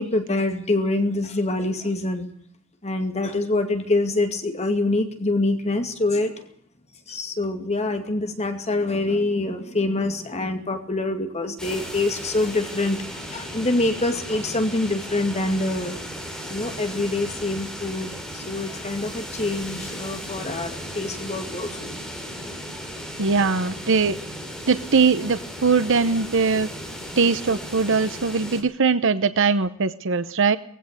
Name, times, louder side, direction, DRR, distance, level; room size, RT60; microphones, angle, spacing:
voice 1, 0.0-2.3 2.8-6.4 7.1-16.0 16.5-21.9, left 2 dB, 30° left, 6 dB, 2.3 m, -25 dB
sound 1, 11.6-28.6, equal, 5° left, 5.6 m, -36 dB
voice 2, 23.2-24.2 24.7-26.7 27.2-30.6, right 4 dB, 65° right, 12 dB, 0.9 m, -21 dB
20.5 x 16.0 x 8.2 m, 0.64 s
head